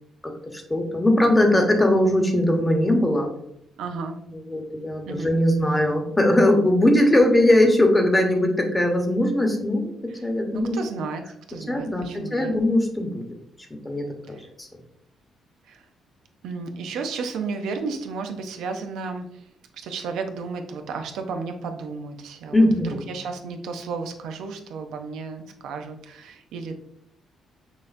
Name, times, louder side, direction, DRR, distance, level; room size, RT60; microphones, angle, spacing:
voice 1, 0.5-3.3 4.3-9.9 10.2-10.8 11.7-13.2 13.8-14.7 22.5-23.1, left 1 dB, 15° left, 3 dB, 0.9 m, -20 dB
voice 2, 3.8-4.2 5.1-5.3 10.5-12.6 15.7-15.8 16.4-19.5 19.7-26.8, right 4 dB, 85° right, 6 dB, 0.5 m, -33 dB
6.3 x 2.5 x 2.6 m, 0.73 s
cardioid pair, 90°, 0 cm